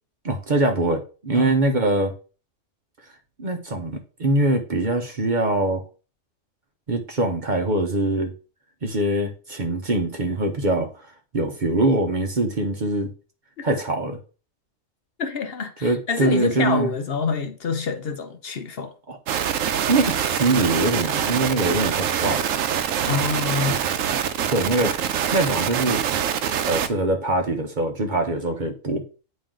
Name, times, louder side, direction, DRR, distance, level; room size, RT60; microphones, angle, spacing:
voice 1, 0.2-2.1 3.4-5.8 6.9-8.3 8.8-10.9 11.3-13.1 13.6-14.2 15.8-16.9 19.1-19.2 19.9-22.4 24.5-24.9 25.3-26.0 26.6-29.0, right 2 dB, 45° right, 0.9 m, -23 dB
voice 2, 15.2-18.9 23.1-23.8, left 5 dB, 55° left, 0.9 m, -27 dB
sound 1, 19.3-26.9, right 9 dB, 85° right, 1.0 m, -24 dB
8.9 x 3.1 x 3.7 m
omnidirectional pair, 1.3 m